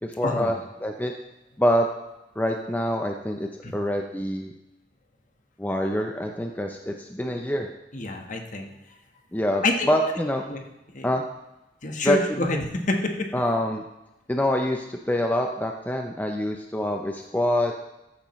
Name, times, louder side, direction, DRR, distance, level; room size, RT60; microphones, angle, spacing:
voice 1, 0.0-1.2 1.6-1.9 2.4-4.5 5.6-7.7 9.3-10.4 11.0-11.2 12.0-12.6 13.3-13.8 14.3-17.7, equal, 10° left, 3 dB, 0.6 m, -26 dB
voice 2, 7.9-8.7 9.6-9.9 10.5-10.6 10.9-11.1 11.8-13.3, left 2 dB, 45° left, 3 dB, 1.3 m, -27 dB
14.0 x 8.7 x 3.1 m, 0.95 s
head